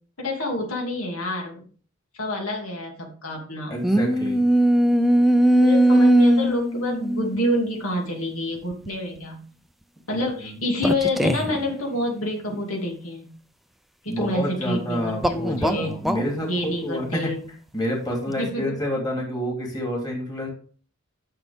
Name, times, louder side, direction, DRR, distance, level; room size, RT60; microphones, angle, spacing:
voice 1, 0.2-1.7 2.2-3.7 5.6-9.4 10.1-13.3 14.0-15.9 16.5-17.5 18.3-18.8, left 1 dB, 80° left, 0 dB, 2.6 m, -28 dB
voice 2, 3.7-4.4 10.4-10.6 14.1-17.1 17.7-20.5, equal, 20° left, -1 dB, 2.9 m, -28 dB
sound 1, 3.8-7.8 8.7-8.9 10.8-11.6 15.2-16.3, right 1 dB, ahead, 0.5 m, -19 dB
10.5 x 7.0 x 3.6 m, 0.42 s
head